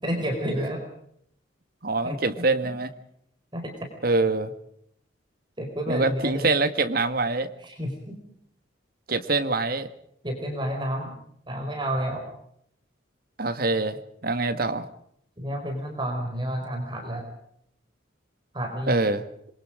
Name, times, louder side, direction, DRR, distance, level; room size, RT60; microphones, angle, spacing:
voice 1, 0.0-0.8 2.0-2.2 3.5-3.9 5.6-6.5 7.6-8.2 10.2-11.1 11.5-12.3 15.4-17.3 18.5-19.1, equal, 25° right, 3 dB, 4.9 m, -30 dB
voice 2, 1.8-2.9 4.0-4.5 5.9-7.5 9.1-9.9 13.4-14.9 18.9-19.2, right 3 dB, 50° right, 9 dB, 1.8 m, -24 dB
27.0 x 23.0 x 5.1 m, 0.70 s
head